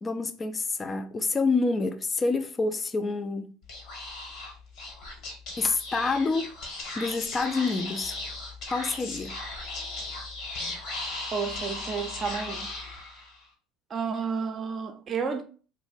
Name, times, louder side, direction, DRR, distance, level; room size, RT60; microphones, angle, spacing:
voice 1, 0.0-3.5 5.6-6.5 6.9-8.2 8.7-9.4, left 3 dB, 25° left, 0.4 m, -27 dB
Speech / Whispering, 3.6-13.4, left 2 dB, 60° left, 1.1 m, -37 dB
voice 2, 11.3-12.7 13.9-15.4, right 5 dB, 35° right, 0.5 m, -31 dB
2.5 x 2.1 x 3.9 m
supercardioid pair, 90°, 0 cm